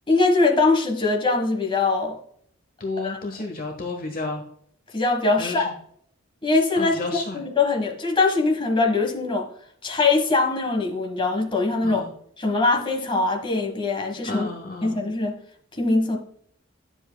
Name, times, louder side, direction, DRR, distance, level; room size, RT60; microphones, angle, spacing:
voice 1, 0.1-2.2 3.0-3.2 4.9-5.7 6.4-7.0 7.3-9.5 9.8-12.1 12.4-14.5 14.8-15.4 15.8-16.2, left 3 dB, 25° left, 1 dB, 1.5 m, -22 dB
voice 2, 2.8-4.4 5.4-5.7 6.8-7.4 11.8-12.1 14.3-15.0, left 3 dB, 45° left, 3 dB, 1.2 m, -31 dB
10.5 x 7.2 x 2.3 m, 0.63 s
head